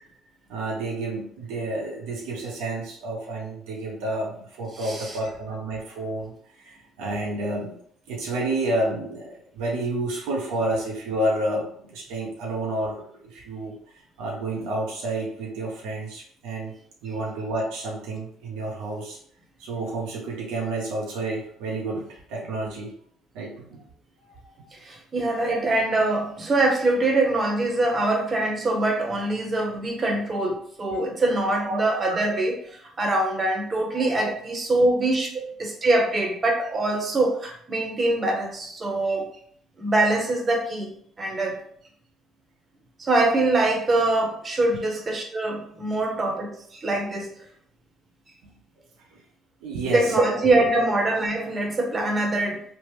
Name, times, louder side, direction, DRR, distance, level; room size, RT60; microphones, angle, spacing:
voice 1, 0.5-7.7 8.1-16.7 17.0-19.2 19.6-22.9 23.3-23.8 24.4-24.7 25.4-25.6 30.9-31.0 31.6-31.8 32.2-32.3 49.1-49.2 49.6-50.3 50.7-50.9, right 2 dB, 80° right, -2 dB, 0.5 m, -30 dB
voice 2, 4.7-5.2 17.0-17.1 24.7-32.6 33.0-39.3 39.8-40.9 41.2-41.6 43.0-47.3 49.9-52.6, right 2 dB, 35° right, 1 dB, 0.9 m, -24 dB
3.1 x 2.0 x 3.0 m, 0.63 s
hypercardioid pair, 60°, 0 cm